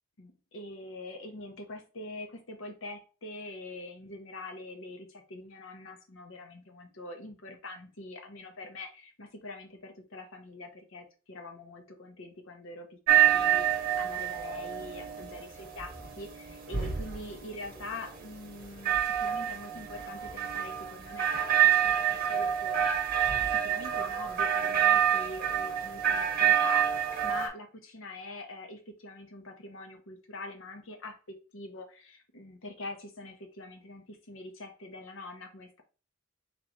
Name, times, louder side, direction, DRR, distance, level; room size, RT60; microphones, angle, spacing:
voice 1, 0.2-35.8, left 2 dB, 65° left, 4 dB, 0.8 m, -44 dB
sound 1, 13.1-27.5, right 10 dB, 45° right, 0.9 m, -27 dB
3.7 x 3.1 x 3.6 m, 0.35 s
head